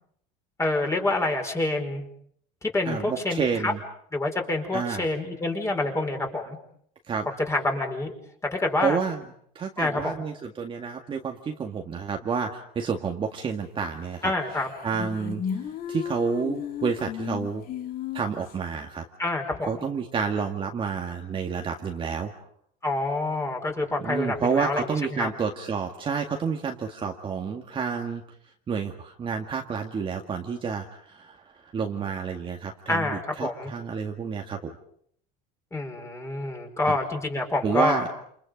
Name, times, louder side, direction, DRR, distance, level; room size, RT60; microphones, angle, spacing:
voice 1, 0.6-2.0 2.6-3.7 4.1-6.6 7.5-8.1 8.4-9.0 9.8-10.2 14.2-14.7 19.2-19.8 22.8-25.3 32.9-33.7 35.7-38.0, left 2 dB, 15° left, 3 dB, 5.0 m, -27 dB
voice 2, 2.9-3.8 4.7-5.1 7.1-7.3 8.8-9.2 9.6-14.3 14.8-15.4 15.9-17.6 18.1-19.0 19.7-22.3 24.0-28.2 28.7-34.7 37.6-38.1, right 6 dB, 25° right, 2 dB, 2.0 m, -29 dB
sound 1, 14.2-14.3 14.5-18.5, left 8 dB, 45° left, 2.4 m, -34 dB
29.0 x 29.0 x 5.3 m, 0.65 s
cardioid pair, 140°, 20 cm